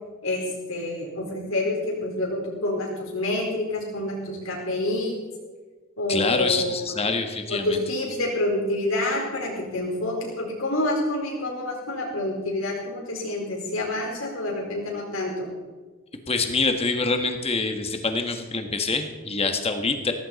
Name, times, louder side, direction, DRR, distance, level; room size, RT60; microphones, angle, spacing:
voice 1, 0.2-5.2 6.0-6.7 7.5-15.5, left 1 dB, 80° left, -2 dB, 4.7 m, -28 dB
voice 2, 6.1-7.8 16.3-20.1, left 3 dB, 30° left, 6 dB, 1.5 m, -25 dB
17.0 x 15.0 x 4.2 m, 1.4 s
head